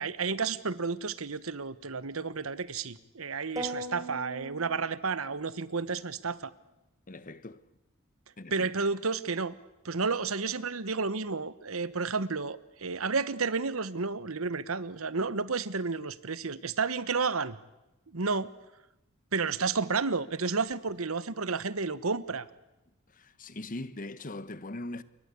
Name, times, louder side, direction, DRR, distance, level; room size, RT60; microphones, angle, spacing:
voice 1, 0.0-6.5 8.5-9.5 9.8-17.6 18.1-18.5 19.3-22.5, right 4 dB, 85° right, 1.2 m, -31 dB
sound 1, 3.6-5.5, right 1 dB, 15° right, 5.1 m, -40 dB
voice 2, 7.1-7.6 8.4-8.7 23.1-25.0, left 2 dB, 40° left, 1.1 m, -40 dB
28.0 x 23.5 x 8.4 m
head